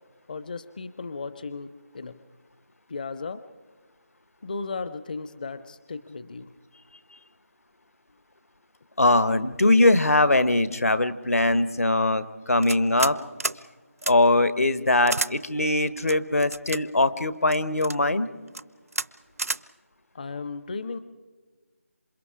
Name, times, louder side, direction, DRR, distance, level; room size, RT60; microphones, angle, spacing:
voice 1, 0.3-2.2 2.9-3.4 4.4-6.5 20.1-21.0, left 4 dB, 35° left, 13 dB, 0.6 m, -35 dB
voice 2, 9.0-13.2 14.1-18.3, left 2 dB, 80° left, 14 dB, 1.2 m, -21 dB
sound 1, 12.6-13.1 13.4-13.6 14.0-14.1 15.1-15.3 16.1-16.8 17.5-18.0 18.5-18.6 18.9-19.1 19.4-19.6, right 3 dB, 75° right, 0.6 m, -30 dB
27.5 x 25.0 x 4.9 m, 1.4 s
figure-of-eight pair, 165°, 8 cm